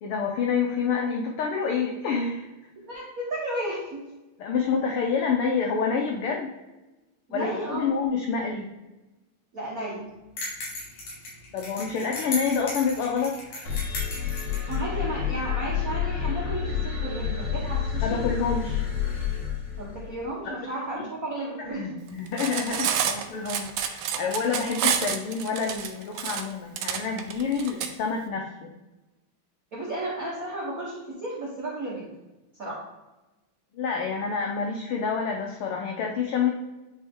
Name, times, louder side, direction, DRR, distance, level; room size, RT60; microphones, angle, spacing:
voice 1, 0.0-2.5 4.4-6.5 7.3-8.7 11.5-13.8 18.0-18.8 20.4-20.6 20.9-21.1 21.6-28.7 33.7-36.5, left 5 dB, 85° left, 1 dB, 1.2 m, -28 dB
voice 2, 2.8-4.1 7.3-7.9 9.5-10.1 14.7-18.2 19.8-22.0 29.7-32.1 32.6-32.8, right 1 dB, 45° right, -5 dB, 1.2 m, -33 dB
sound 1, 10.4-14.8, left 2 dB, 65° left, 3.8 m, -36 dB
sound 2, 13.6-20.2, left 8 dB, 50° left, 2.0 m, -29 dB
Cutlery silverware, 22.3-27.9, right 8 dB, 75° right, 1.5 m, -28 dB
9.8 x 3.5 x 3.6 m, 1.1 s
omnidirectional pair, 3.3 m